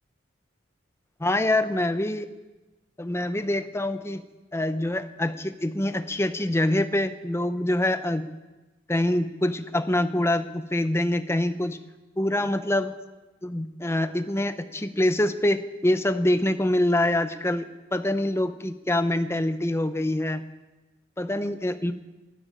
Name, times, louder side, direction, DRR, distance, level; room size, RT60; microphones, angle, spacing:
voice 1, 1.2-2.3 3.0-4.2 4.5-8.3 8.9-11.8 12.2-12.9 13.4-20.4 21.2-21.9, left 1 dB, 15° left, 10 dB, 0.7 m, -25 dB
13.0 x 12.0 x 9.0 m, 1.1 s
head